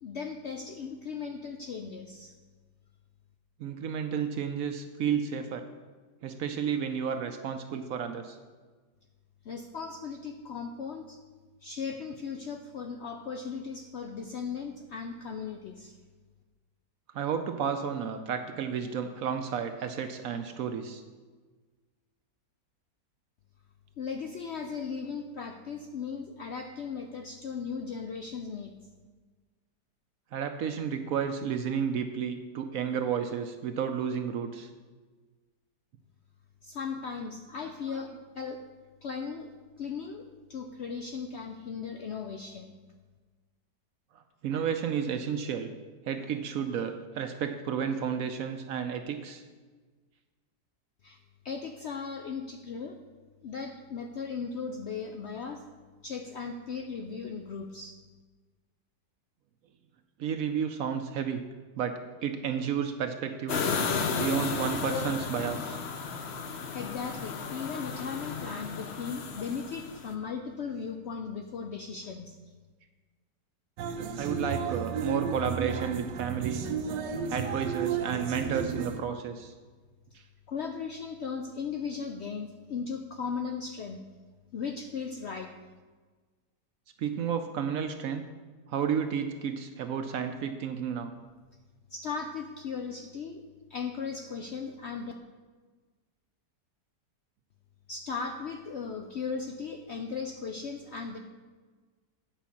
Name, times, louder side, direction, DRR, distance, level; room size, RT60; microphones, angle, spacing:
voice 1, 0.0-2.3 9.4-11.2 11.6-16.0 24.0-28.7 36.6-38.6 39.0-39.5 39.8-42.8 51.0-51.2 51.4-53.0 53.4-55.6 56.0-58.0 66.7-72.4 80.5-84.0 84.5-85.5 91.9-93.4 93.7-95.1 97.9-101.2, left 5 dB, 85° left, 4 dB, 0.6 m, -37 dB
voice 2, 3.6-5.6 6.2-8.4 17.1-21.0 30.3-34.7 37.9-38.0 44.4-45.7 46.1-49.4 60.2-61.4 61.7-63.7 64.1-65.8 74.2-76.7 77.3-79.5 80.1-80.2 87.0-88.2 88.7-91.1, right 7 dB, 70° right, 7 dB, 0.9 m, -32 dB
sound 1, 63.5-70.1, left 5 dB, 55° left, 0.8 m, -33 dB
sound 2, 73.8-79.0, right 6 dB, 90° right, 1.3 m, -33 dB
9.0 x 5.0 x 7.0 m, 1.4 s
omnidirectional pair, 1.8 m